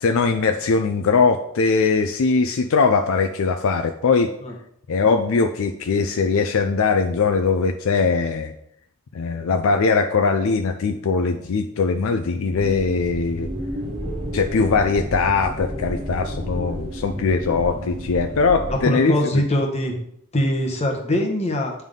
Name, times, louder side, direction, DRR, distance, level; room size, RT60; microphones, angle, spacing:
voice 1, 0.0-4.3 4.9-8.5 9.1-13.5 14.3-19.2, left 4 dB, 60° left, 6 dB, 0.4 m, -20 dB
sound 1, 12.5-18.8, equal, 30° right, 1.2 m, -31 dB
voice 2, 18.7-20.0 20.3-21.7, left 1 dB, 30° left, 2 dB, 1.0 m, -22 dB
9.1 x 3.5 x 3.7 m, 0.73 s
head